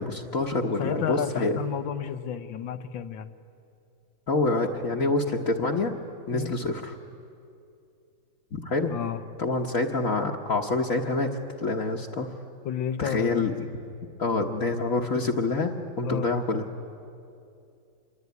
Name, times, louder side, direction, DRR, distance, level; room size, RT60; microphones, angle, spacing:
voice 1, 0.0-1.5 4.3-5.9 6.3-6.9 8.5-8.9 9.4-11.3 11.6-12.3 13.0-13.7 14.2-16.6, left 3 dB, 50° left, 0 dB, 1.5 m, -26 dB
voice 2, 0.6-3.3 6.3-6.5 8.9-9.2 12.7-13.6 16.0-16.3, left 8 dB, 85° left, 10 dB, 1.8 m, -32 dB
26.5 x 22.0 x 9.6 m, 2.6 s
omnidirectional pair, 2.1 m